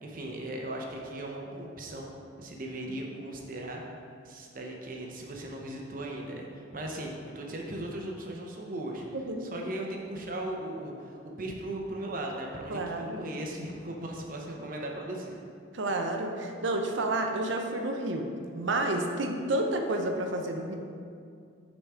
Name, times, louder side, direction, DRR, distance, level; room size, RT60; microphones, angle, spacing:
voice 1, 0.0-2.1 2.4-3.8 4.2-9.1 9.4-15.4, right 1 dB, 45° right, 0 dB, 0.8 m, -38 dB
voice 2, 9.1-9.5 12.7-13.2 15.7-20.8, right 2 dB, 80° right, 3 dB, 0.6 m, -30 dB
6.7 x 4.1 x 4.7 m, 2.4 s
head